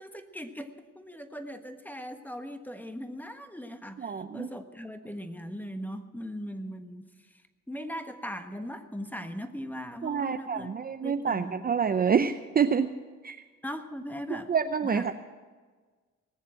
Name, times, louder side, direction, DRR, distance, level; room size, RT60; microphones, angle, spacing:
voice 1, 0.0-7.4 7.7-10.8 11.0-11.7 13.6-14.5 14.8-15.1, equal, 5° left, 7 dB, 1.3 m, -39 dB
voice 2, 4.0-4.5 10.0-12.9 13.2-13.4 14.5-15.1, right 6 dB, 30° right, 8 dB, 0.6 m, -27 dB
19.5 x 7.3 x 8.9 m, 1.4 s
cardioid pair, 90°, 30 cm